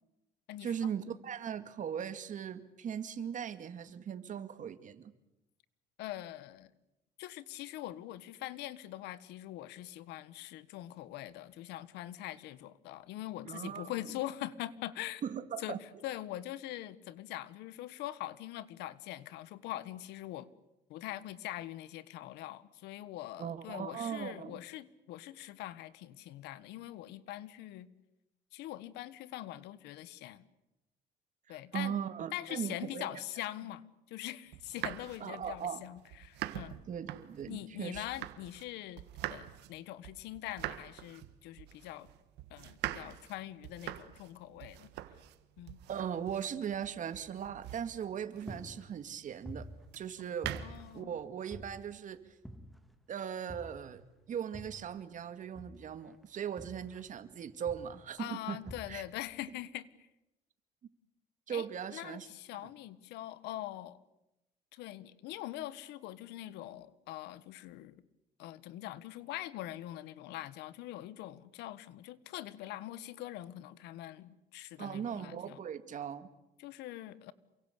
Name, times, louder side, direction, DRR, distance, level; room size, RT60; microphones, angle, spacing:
voice 1, 0.6-5.1 13.4-13.9 15.2-15.8 23.4-24.6 31.5-33.1 35.2-35.8 36.9-38.1 45.9-49.7 49.9-50.6 50.9-52.2 53.1-54.0 54.3-58.6 58.9-59.0 61.5-62.3 74.8-76.3, right 8 dB, 50° right, 10 dB, 2.2 m, -39 dB
voice 2, 6.0-6.7 7.2-15.2 15.6-20.5 20.9-27.9 28.5-30.4 31.5-32.0 32.3-36.8 37.5-42.1 42.5-44.9 45.6-45.8 50.6-51.2 58.2-60.1 61.5-64.0 64.7-68.0 68.4-75.6 76.6-77.3, left 14 dB, 90° left, 17 dB, 1.3 m, -43 dB
sound 1, 34.5-38.7 39.0-48.9 49.9-51.0, right 14 dB, 85° right, 1.6 m, -44 dB
sound 2, 47.7-48.1 48.5-50.2 50.4-52.1 52.4-53.0 53.5-55.1 55.5-57.3 57.7-58.1 58.7-59.3, equal, ahead, 2.9 m, -49 dB
28.0 x 23.5 x 8.3 m, 0.93 s
cardioid pair, 110°, 17 cm